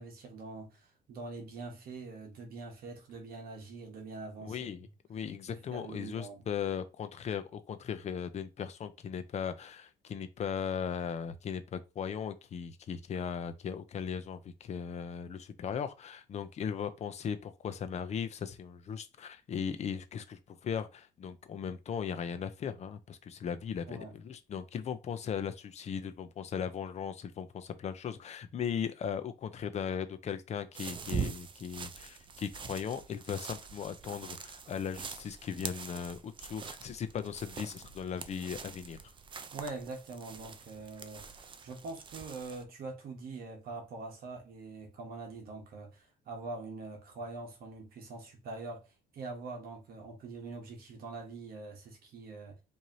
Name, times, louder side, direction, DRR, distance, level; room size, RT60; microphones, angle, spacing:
voice 1, 0.0-4.7 5.5-6.4 23.9-24.1 39.5-52.6, right 3 dB, 60° right, 1.2 m, -44 dB
voice 2, 4.4-39.0, left 7 dB, 40° left, 0.6 m, -38 dB
sound 1, 30.7-42.6, right 6 dB, 30° right, 0.5 m, -43 dB
4.7 x 2.7 x 2.7 m
cardioid pair, 110°, 17 cm